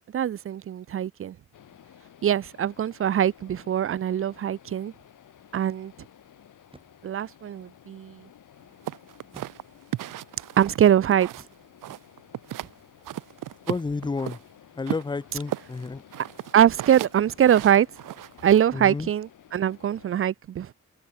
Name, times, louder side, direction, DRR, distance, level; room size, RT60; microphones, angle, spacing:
voice 1, 0.1-1.4 2.2-4.9 5.5-5.9 7.0-8.2 10.6-11.3 16.5-17.9 18.4-20.7, right 10 dB, 45° right, 0.4 m, -22 dB
sound 1, 1.5-20.2, left 10 dB, 75° left, 3.0 m, -54 dB
sound 2, 6.7-7.2 9.3-10.1 11.4-11.8 14.0-14.5, right 2 dB, 15° right, 2.9 m, -53 dB
sound 3, 8.9-11.5 11.8-12.7 13.0-14.4 14.9-18.7, right 14 dB, 85° right, 0.6 m, -35 dB
voice 2, 13.7-14.4 14.8-16.0 18.7-19.1, left 4 dB, 15° left, 0.5 m, -31 dB
cardioid pair, 115°, 31 cm